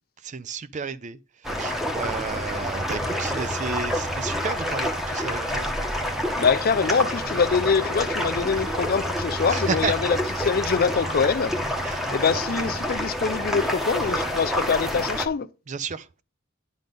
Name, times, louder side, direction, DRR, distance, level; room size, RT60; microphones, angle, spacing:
voice 1, 0.2-5.7 9.4-9.9 11.8-12.4 15.7-16.2, right 5 dB, 35° right, 0.4 m, -32 dB
sound 1, 1.4-15.3, equal, ahead, 1.0 m, -28 dB
voice 2, 6.3-11.5 12.1-15.5, left 5 dB, 45° left, 0.5 m, -24 dB
10.5 x 3.9 x 5.3 m
head